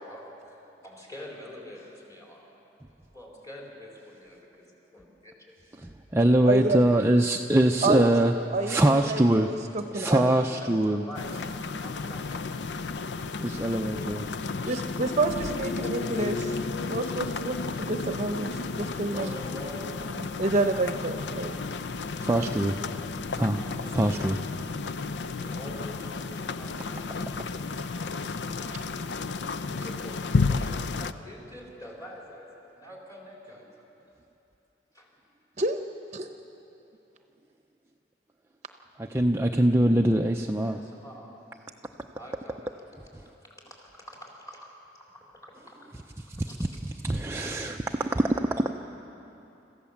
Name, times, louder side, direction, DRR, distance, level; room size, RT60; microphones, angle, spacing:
voice 1, 0.0-2.5 3.1-5.6 10.1-10.6 10.9-12.6 15.7-15.9 18.6-20.2 23.5-23.9 25.4-27.5 27.9-28.9 29.7-32.5 32.7-33.9 34.9-35.1 40.6-41.3 42.1-42.9 43.1-44.7 45.0-45.8 46.5-46.6, left 1 dB, 20° left, -3 dB, 4.1 m, -46 dB
voice 2, 5.8-8.3 8.7-9.5 9.9-11.0 13.4-14.3 22.2-22.8 23.3-23.6 23.9-24.4 39.0-40.8 43.1-43.2 46.3-48.7, right 1 dB, 15° right, 3 dB, 0.5 m, -23 dB
voice 3, 6.4-6.8 7.8-8.1 8.5-8.8 9.1-9.4 9.7-10.2 14.7-16.6 16.9-18.5 18.8-19.3 20.2-21.6 35.6-35.8 36.1-36.3, right 2 dB, 40° right, 6 dB, 0.8 m, -28 dB
sound 1, 11.1-31.1, left 4 dB, 70° left, 0.5 m, -32 dB
26.5 x 14.5 x 7.2 m, 2.9 s
head